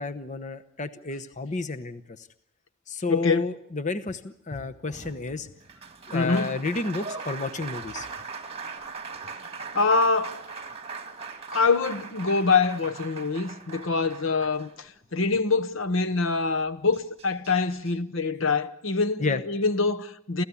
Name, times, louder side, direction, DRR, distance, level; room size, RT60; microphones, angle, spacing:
voice 1, 0.0-2.3 2.9-5.5 6.1-8.1 19.2-19.4, left 3 dB, 35° left, 1.0 m, -31 dB
voice 2, 3.1-3.5 6.1-6.5 9.7-10.4 11.5-20.4, left 4 dB, 70° left, 1.0 m, -25 dB
Applause, 4.9-15.2 16.5-16.6 16.9-17.9, right 5 dB, 30° right, 1.8 m, -40 dB
29.0 x 14.5 x 8.5 m
head